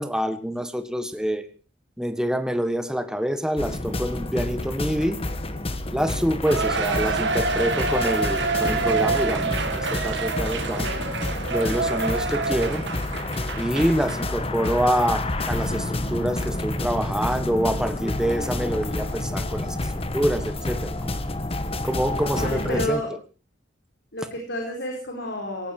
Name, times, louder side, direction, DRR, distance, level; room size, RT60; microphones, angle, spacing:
voice 1, 0.0-1.5 2.0-5.2 5.9-10.9 11.5-12.8 13.6-19.8 20.1-21.2 21.8-23.0, equal, 5° right, 9 dB, 1.5 m, -26 dB
sound 1, 3.6-22.9, left 1 dB, 30° left, 1.4 m, -29 dB
Cheering, 6.5-14.2 14.6-14.7 15.4-15.5, right 4 dB, 65° right, 2.4 m, -27 dB
voice 2, 6.7-7.1 10.6-11.0 22.2-23.1 24.1-25.7, left 1 dB, 65° left, 2 dB, 4.6 m, -31 dB
18.5 x 16.0 x 4.6 m, 0.37 s
head